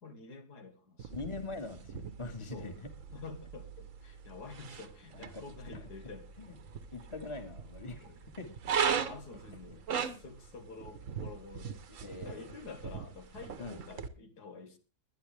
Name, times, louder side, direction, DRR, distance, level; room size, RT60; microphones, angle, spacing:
voice 1, 0.0-1.2 2.5-2.7 3.1-6.3 8.0-8.2 8.9-11.8 12.2-14.8, left 4 dB, 85° left, 6 dB, 2.3 m, -48 dB
sound 1, 1.0-14.1, right 7 dB, 55° right, 1.3 m, -39 dB
voice 2, 1.1-2.9 5.1-5.8 6.4-6.5 6.9-8.5 9.9-10.2 11.9-12.5 13.6-13.8, left 3 dB, 20° left, 6 dB, 1.8 m, -43 dB
21.5 x 10.0 x 3.4 m, 0.31 s
omnidirectional pair, 1.7 m